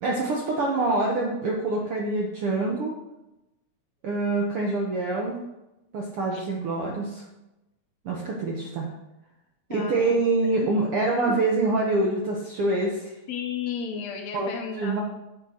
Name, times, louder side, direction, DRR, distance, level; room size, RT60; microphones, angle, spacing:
voice 1, 0.0-2.9 4.0-5.4 5.9-7.2 8.0-8.9 9.7-13.1 14.3-14.5 14.7-15.0, right 2 dB, 70° right, -1 dB, 1.3 m, -25 dB
voice 2, 9.7-10.5 11.3-11.4 13.3-15.0, left 7 dB, 70° left, 2 dB, 1.8 m, -34 dB
9.3 x 8.5 x 2.9 m, 0.96 s
omnidirectional pair, 3.6 m